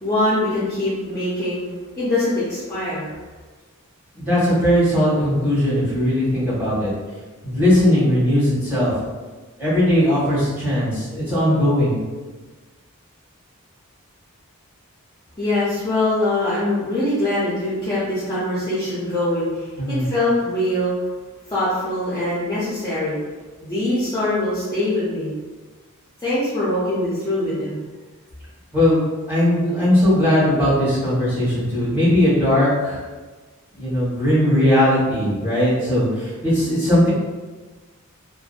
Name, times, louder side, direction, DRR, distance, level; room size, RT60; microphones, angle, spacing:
voice 1, 0.0-1.7 2.0-3.1 15.4-20.9 21.5-23.2 23.6-25.3 26.2-27.8, left 1 dB, 15° left, -11 dB, 0.5 m, -23 dB
voice 2, 4.1-6.9 7.4-8.9 9.6-12.0 19.8-20.0 28.7-29.0 29.3-33.0 33.7-37.1, left 1 dB, 10° right, -11 dB, 1.1 m, -18 dB
2.5 x 2.1 x 2.4 m, 1.3 s
head